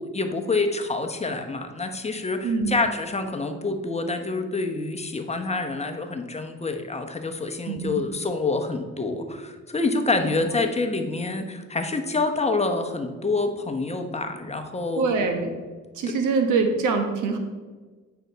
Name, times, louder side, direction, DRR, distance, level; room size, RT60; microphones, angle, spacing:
voice 1, 0.0-15.0 16.1-16.2, left 3 dB, 20° left, 6 dB, 0.9 m, -27 dB
voice 2, 2.4-2.7 7.7-8.0 10.2-10.7 15.0-15.5 16.0-17.4, right 4 dB, 80° right, 5 dB, 1.2 m, -24 dB
8.7 x 5.7 x 4.1 m, 1.4 s
cardioid pair, 90°, 30 cm